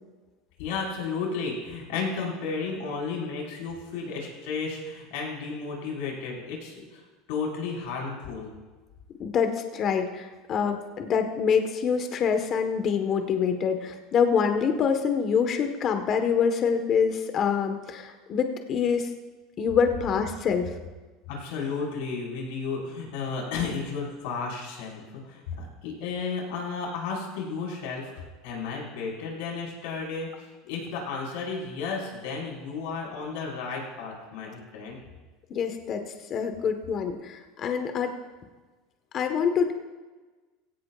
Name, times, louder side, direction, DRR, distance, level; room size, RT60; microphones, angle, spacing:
voice 1, 0.6-7.0 7.3-8.5 21.3-35.0, left 4 dB, 75° left, -2 dB, 5.0 m, -33 dB
voice 2, 9.2-19.1 19.6-20.7 35.5-36.0 36.3-38.1 39.1-39.7, left 6 dB, 45° left, 6 dB, 1.4 m, -25 dB
17.0 x 16.5 x 2.5 m, 1.3 s
supercardioid pair, 105°, 0 cm